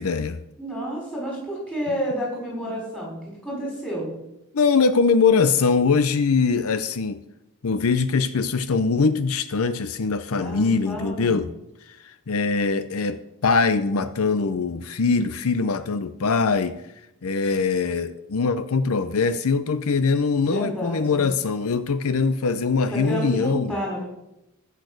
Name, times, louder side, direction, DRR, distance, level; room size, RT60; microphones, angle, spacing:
voice 1, 0.0-0.4 4.5-7.2 7.6-11.5 11.9-16.8 17.2-23.7, left 4 dB, 80° left, 12 dB, 0.6 m, -22 dB
voice 2, 0.6-4.1 10.3-11.4 20.4-21.2 22.9-24.1, equal, 5° left, -3 dB, 5.2 m, -30 dB
14.5 x 6.6 x 6.5 m, 0.86 s
head